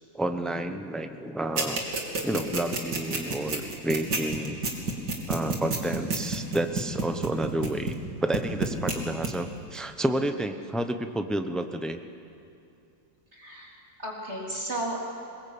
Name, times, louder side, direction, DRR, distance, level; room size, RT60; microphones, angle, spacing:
voice 1, 0.1-1.8 2.2-4.6 5.3-12.0, right 1 dB, ahead, 7 dB, 0.3 m, -30 dB
sound 1, 1.6-8.1 8.3-9.0 9.2-9.3, right 3 dB, 65° right, 3.2 m, -28 dB
voice 2, 13.3-15.0, right 1 dB, 35° right, -3 dB, 4.0 m, -34 dB
22.5 x 21.5 x 8.6 m, 2.6 s
omnidirectional pair, 2.0 m